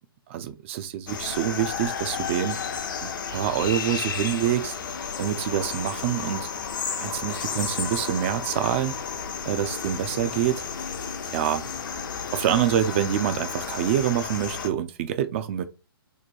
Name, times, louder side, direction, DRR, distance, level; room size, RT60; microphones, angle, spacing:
voice 1, 0.3-2.6 3.0-4.8 5.2-6.5 7.0-9.0 9.5-10.6 11.3-11.6 12.3-15.6, right 10 dB, 30° right, 0.4 m, -26 dB
sound 1, 1.1-14.7, left 6 dB, 55° left, 0.6 m, -32 dB
3.1 x 2.1 x 4.2 m
figure-of-eight pair, 130°, 13 cm